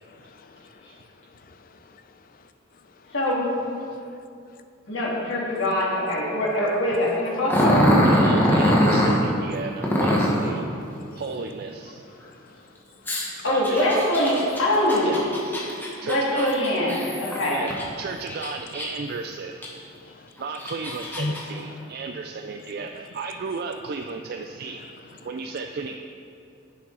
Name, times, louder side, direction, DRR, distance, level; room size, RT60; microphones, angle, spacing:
voice 1, 0.1-1.1 1.3-2.0 3.0-3.1 11.1-11.2 12.2-12.6 15.7-15.8 20.0-20.3 21.2-21.3 25.2-25.3, left 2 dB, 45° left, 8 dB, 0.5 m, -38 dB
voice 2, 3.1-3.5 4.9-7.9 13.4-15.1 16.0-17.6, left 1 dB, 70° left, -4 dB, 2.2 m, -23 dB
Growling, 7.5-9.2 9.8-10.4 13.1-17.8 18.3-19.1 19.6-19.7 20.4-21.4, equal, 10° left, 1.3 m, -22 dB
voice 3, 8.0-10.7 11.1-12.0 13.5-14.1 15.1-15.2 15.5-15.7 16.0-16.5 17.5-17.7 18.0-19.7 20.4-26.0, right 4 dB, 50° right, 5 dB, 0.4 m, -34 dB
11.0 x 7.3 x 3.9 m, 2.5 s
head